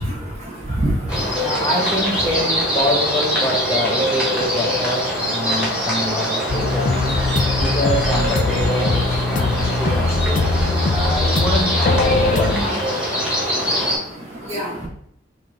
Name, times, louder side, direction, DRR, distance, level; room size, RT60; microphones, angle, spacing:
voice 1, 0.0-2.4 13.6-14.9, right 1 dB, 35° right, -3 dB, 1.2 m, -28 dB
sound 1, 1.1-14.0, equal, 5° right, 1.5 m, -23 dB
voice 2, 1.4-5.0 5.3-6.9 7.6-10.5 10.8-12.8, left 1 dB, 15° left, -2 dB, 1.2 m, -25 dB
sound 2, 6.5-12.6, left 3 dB, 40° left, 0.4 m, -21 dB
5.7 x 2.8 x 3.2 m, 0.66 s
head